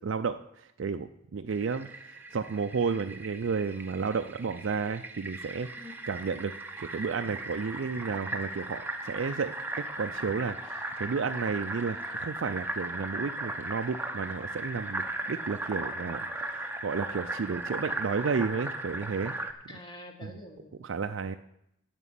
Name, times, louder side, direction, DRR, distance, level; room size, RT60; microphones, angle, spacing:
voice 1, 0.0-5.7 6.1-9.5 10.0-19.3 20.2-20.3 20.8-21.4, right 5 dB, 70° right, 8 dB, 0.4 m, -32 dB
Fill (with liquid), 1.5-19.5, right 2 dB, 10° right, 0.8 m, -37 dB
voice 2, 19.7-20.9, left 1 dB, 20° left, 2 dB, 1.8 m, -46 dB
11.0 x 6.1 x 8.4 m, 0.80 s
head